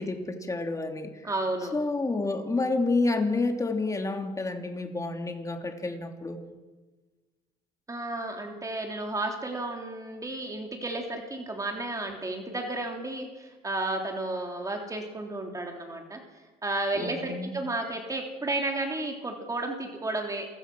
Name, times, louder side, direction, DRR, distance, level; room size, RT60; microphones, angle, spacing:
voice 1, 0.0-1.2 1.7-6.4 17.0-17.5, left 3 dB, 20° left, 4 dB, 3.0 m, -29 dB
voice 2, 1.2-1.7 7.9-16.2 16.6-20.5, right 2 dB, 20° right, 2 dB, 3.4 m, -32 dB
27.5 x 16.5 x 6.3 m, 1.3 s
cardioid pair, 110°, 17 cm